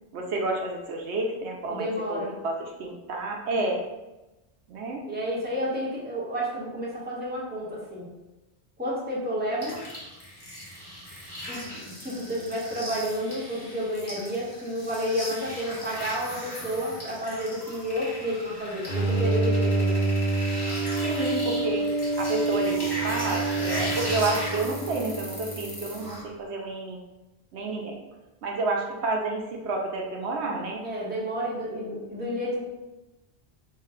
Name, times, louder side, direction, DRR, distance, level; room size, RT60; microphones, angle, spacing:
voice 1, 0.1-3.8 4.7-5.0 21.0-21.9 22.2-27.0 27.5-28.0 28.4-30.8, right 2 dB, 75° right, 1 dB, 0.9 m, -30 dB
voice 2, 1.7-2.3 3.5-3.6 5.1-8.1 8.8-9.8 11.5-20.0 30.8-32.6, equal, 10° right, -6 dB, 0.9 m, -31 dB
sound 1, 9.6-26.2, equal, 25° left, 0.8 m, -38 dB
Bowed string instrument, 18.9-26.1, right 3 dB, 40° right, 0.9 m, -27 dB
4.5 x 2.2 x 3.6 m, 1.0 s
omnidirectional pair, 1.1 m